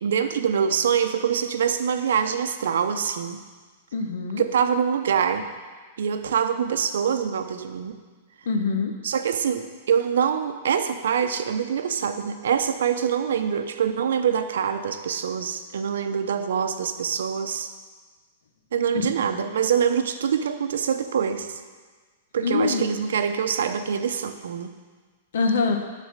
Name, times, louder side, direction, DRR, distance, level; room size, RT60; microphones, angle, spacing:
voice 1, 0.0-3.4 4.4-5.5 6.0-8.0 9.0-17.7 18.7-21.6 22.3-24.7, right 7 dB, 90° right, 8 dB, 0.7 m, -25 dB
voice 2, 3.9-4.4 8.5-8.9 19.4-19.5 22.4-22.8 25.3-25.8, left 4 dB, 75° left, 4 dB, 1.2 m, -24 dB
11.5 x 4.2 x 6.5 m, 1.4 s
supercardioid pair, 175°, 0 cm